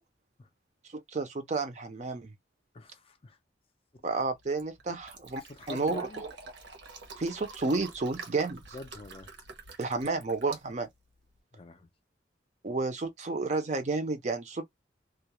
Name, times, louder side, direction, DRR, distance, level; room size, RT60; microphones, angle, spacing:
voice 1, 1.1-2.3 4.0-5.4 5.7-6.1 7.2-8.6 9.8-10.9 12.6-14.6, right 3 dB, 40° right, 0.5 m, -31 dB
voice 2, 2.7-3.4 3.9-4.1 4.9-5.0 5.4-6.2 8.7-9.3 11.5-11.9, left 2 dB, 30° left, 0.4 m, -45 dB
Fill (with liquid), 4.3-11.4, right 4 dB, 75° right, 0.8 m, -48 dB
2.3 x 2.0 x 2.8 m
head